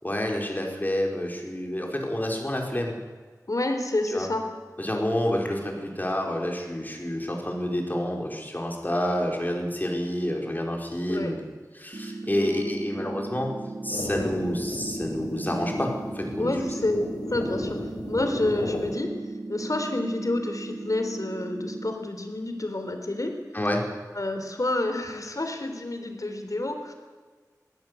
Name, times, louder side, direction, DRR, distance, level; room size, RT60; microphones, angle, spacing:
voice 1, 0.0-2.9 4.1-4.3 4.8-11.4 11.7-13.5 13.8-16.5 23.5-23.8, left 1 dB, 30° left, 1 dB, 5.1 m, -28 dB
voice 2, 3.5-4.4 11.1-11.3 12.3-13.1 14.2-14.4 16.4-17.8 18.1-19.2 19.5-23.4 24.2-26.9, left 2 dB, 60° left, 6 dB, 3.5 m, -29 dB
sound 1, 11.9-21.9, right 2 dB, 70° right, 1.4 m, -37 dB
sound 2, 13.9-19.0, left 1 dB, 85° left, 5.3 m, -35 dB
21.5 x 16.5 x 8.4 m, 1.5 s
wide cardioid pair, 50°, 7 cm